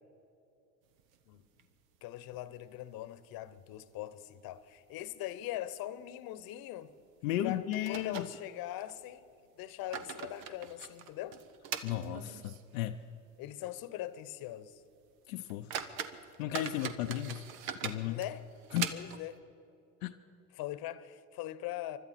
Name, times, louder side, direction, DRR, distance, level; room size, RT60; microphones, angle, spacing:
sound 1, 1.0-2.0 2.3-2.4 2.7-2.8 3.4-3.9 4.2-4.4 5.0-5.2 5.5-5.6 7.0-7.1 7.7-8.9 9.6-12.8 13.1-13.2 13.8-13.9 14.3-14.5 15.0-15.1 15.5-19.4, right 8 dB, 80° right, 1.0 m, -42 dB
voice 1, 2.0-6.9 7.4-9.3 9.6-11.4 13.4-14.8 18.0-18.4 18.9-19.4 20.5-22.0, left 13 dB, 60° left, 1.0 m, -41 dB
voice 2, 7.2-8.3 11.8-13.0 15.3-15.7 16.4-17.4 17.8-18.2 18.7-18.9 20.0-20.1, left 13 dB, 80° left, 0.6 m, -34 dB
25.0 x 12.5 x 4.3 m
hypercardioid pair, 75°, 40 cm